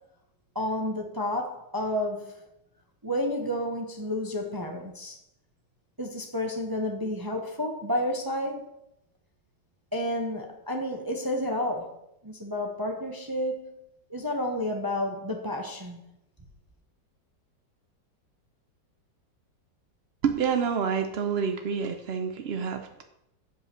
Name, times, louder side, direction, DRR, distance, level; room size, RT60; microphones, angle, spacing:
voice 1, 0.5-2.4 3.0-5.2 6.0-8.7 9.9-11.9 12.2-13.7 14.1-16.0, left 1 dB, 20° right, 0.5 m, -30 dB
voice 2, 20.2-23.0, right 6 dB, 70° right, 0.6 m, -28 dB
7.8 x 5.5 x 6.6 m
omnidirectional pair, 2.0 m